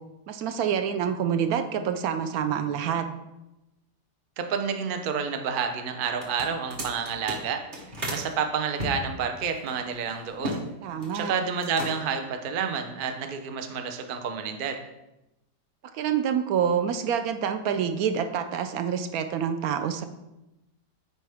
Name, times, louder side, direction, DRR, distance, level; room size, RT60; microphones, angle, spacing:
voice 1, 0.3-3.1 10.8-11.3 15.9-20.0, right 8 dB, 70° right, 8 dB, 0.9 m, -27 dB
voice 2, 4.4-7.6 8.1-10.6 11.1-14.8, right 6 dB, 85° right, 6 dB, 0.4 m, -29 dB
sound 1, 6.1-8.3 8.8-10.6 10.9-11.3 11.6-12.2, equal, 35° right, 1.1 m, -35 dB
8.6 x 4.8 x 3.4 m, 0.94 s
omnidirectional pair, 1.8 m